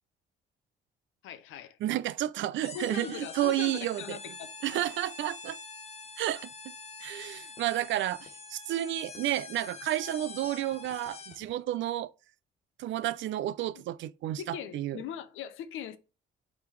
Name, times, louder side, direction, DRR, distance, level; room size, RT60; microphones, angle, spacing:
voice 1, 1.2-1.8 2.7-4.8 13.7-13.8 14.4-16.0, left 9 dB, 85° left, 0.6 m, -41 dB
voice 2, 1.8-4.2 4.6-5.6 6.2-6.5 7.0-12.1 12.8-15.0, right 13 dB, 70° right, 0.4 m, -31 dB
sound 1, 2.6-11.5, left 4 dB, 30° left, 0.8 m, -45 dB
4.9 x 3.4 x 3.2 m
cardioid pair, 90°, 20 cm